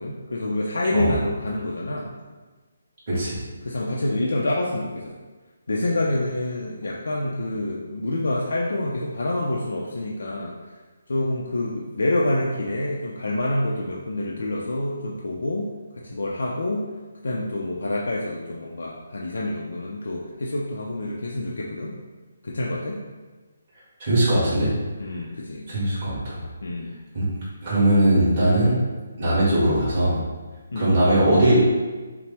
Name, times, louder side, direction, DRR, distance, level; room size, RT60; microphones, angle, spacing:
voice 1, 0.0-2.1 3.6-5.1 5.7-10.6 11.1-15.7 16.0-16.8 17.2-21.9 22.4-23.0 25.0-25.7 26.6-26.9 30.7-30.9, left 1 dB, 80° left, -2 dB, 0.5 m, -27 dB
voice 2, 3.1-3.4 24.0-24.7 25.7-26.4 27.1-27.2 27.6-28.8 29.2-30.2 30.7-31.7, right 1 dB, 20° right, -10 dB, 1.3 m, -20 dB
5.7 x 2.1 x 3.4 m, 1.3 s
hypercardioid pair, 180°, 0 cm